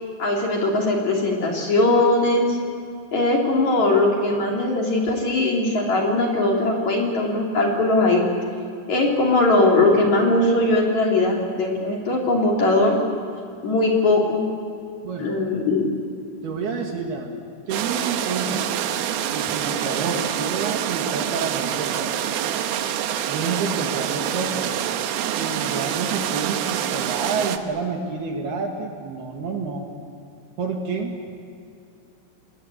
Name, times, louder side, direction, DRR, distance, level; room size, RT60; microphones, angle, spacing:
voice 1, 0.2-2.6 3.1-8.2 8.9-13.0 13.6-14.4 15.2-15.8, left 2 dB, 40° left, -1 dB, 3.6 m, -20 dB
voice 2, 15.0-15.4 16.4-17.4 17.7-18.8 19.2-22.2 23.3-24.8 25.3-29.9 30.6-31.2, right 4 dB, 60° right, 2 dB, 3.3 m, -29 dB
sound 1, 17.7-27.6, right 10 dB, 75° right, 2.3 m, -26 dB
28.5 x 20.5 x 8.5 m, 2.5 s
omnidirectional pair, 5.9 m